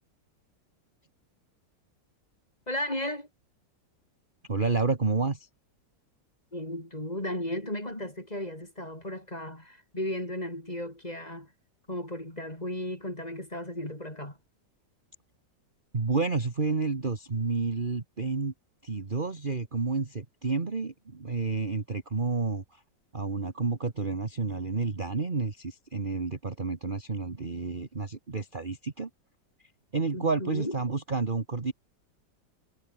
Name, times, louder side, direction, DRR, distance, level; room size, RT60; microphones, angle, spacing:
voice 1, 2.7-3.3 6.5-11.5 11.9-14.4 30.1-30.8, left 1 dB, 20° left, 6.2 m, -35 dB
voice 2, 4.5-5.5 15.9-18.5 18.8-22.8 23.1-29.1 29.9-31.7, right 4 dB, 30° right, 1.8 m, -30 dB
omnidirectional pair, 1.9 m